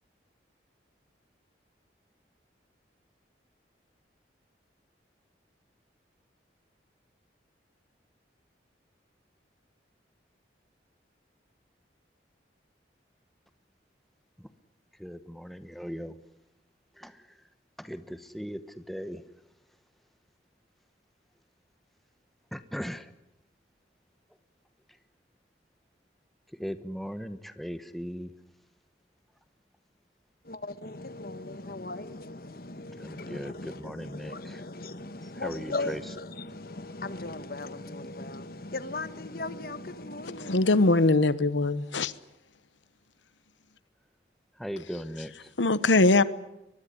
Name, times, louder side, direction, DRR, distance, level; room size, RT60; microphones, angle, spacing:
voice 1, 15.0-16.1 16.9-17.4 17.8-19.2 22.5-23.1 26.5-28.3 33.0-34.7 35.2-36.1 44.5-45.5, equal, ahead, 10 dB, 1.0 m, -38 dB
voice 2, 30.4-41.1, left 2 dB, 55° left, 12 dB, 1.4 m, -38 dB
voice 3, 40.4-42.1 45.6-46.2, left 2 dB, 90° left, 15 dB, 1.1 m, -22 dB
23.5 x 21.5 x 10.0 m, 0.91 s
head